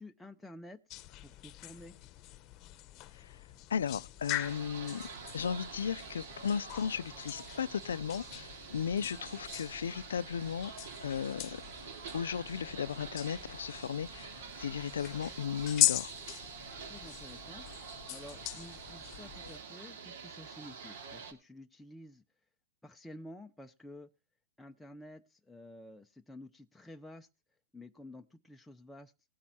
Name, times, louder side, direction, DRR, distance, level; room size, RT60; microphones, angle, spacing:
voice 1, 0.0-2.0 16.8-22.2 22.8-24.1 24.6-27.3 27.7-29.1, left 1 dB, 5° left, 0.6 m, -51 dB
sound 1, 0.9-19.6, left 17 dB, 35° left, 0.9 m, -40 dB
voice 2, 3.7-5.1 5.3-10.7 11.0-11.6 12.1-14.3 14.6-16.1, left 7 dB, 85° left, 0.5 m, -35 dB
sound 2, 4.3-21.3, right 6 dB, 65° right, 2.5 m, -47 dB
19.0 x 8.6 x 2.9 m
hypercardioid pair, 135°, 0 cm